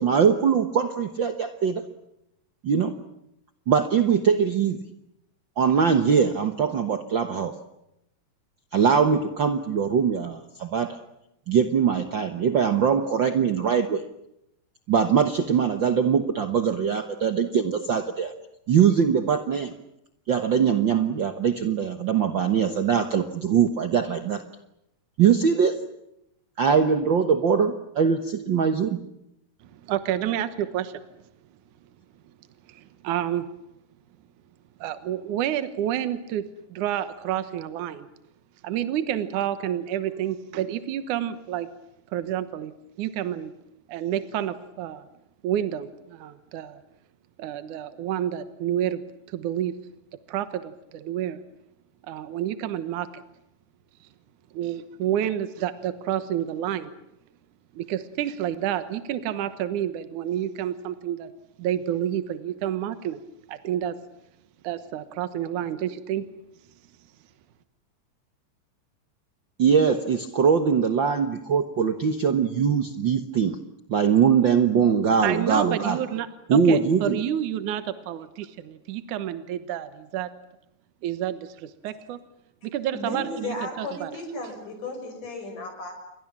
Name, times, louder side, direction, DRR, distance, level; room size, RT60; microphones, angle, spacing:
voice 1, 0.0-1.8 2.6-2.9 3.7-4.8 5.6-7.5 8.7-11.0 11.5-14.0 14.9-18.3 18.7-19.7 20.3-24.4 25.2-25.8 26.6-29.0 69.6-73.6 73.9-76.0 76.5-77.2, right 7 dB, 55° right, 8 dB, 1.3 m, -22 dB
voice 2, 29.6-31.0 32.7-33.5 34.8-38.1 38.6-41.7 42.1-43.5 43.9-45.0 45.4-46.8 47.4-49.0 49.3-49.8 50.3-51.4 52.1-53.1 54.5-56.9 57.8-61.3 61.6-63.2 63.5-64.0 64.6-66.3 75.2-80.3 81.0-82.2 82.6-84.1, right 11 dB, 75° right, 11 dB, 2.6 m, -29 dB
voice 3, 82.9-85.9, left 2 dB, 70° left, 5 dB, 7.7 m, -34 dB
29.5 x 23.0 x 7.4 m, 0.83 s
omnidirectional pair, 3.7 m